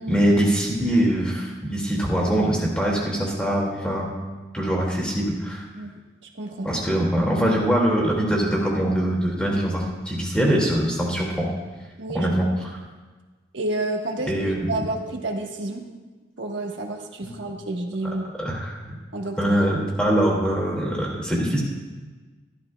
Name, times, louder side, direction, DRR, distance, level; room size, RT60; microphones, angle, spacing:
voice 1, 0.1-4.1 4.5-5.7 6.6-11.5 12.1-12.5 14.3-14.8 17.2-17.3 18.0-18.9 19.4-21.6, right 1 dB, 5° left, -3 dB, 2.2 m, -23 dB
voice 2, 6.3-6.7 12.0-12.3 13.5-14.3 14.7-15.8 16.4-18.2 19.1-19.6, right 2 dB, 80° right, 1 dB, 1.3 m, -29 dB
13.0 x 12.5 x 2.3 m, 1.3 s
head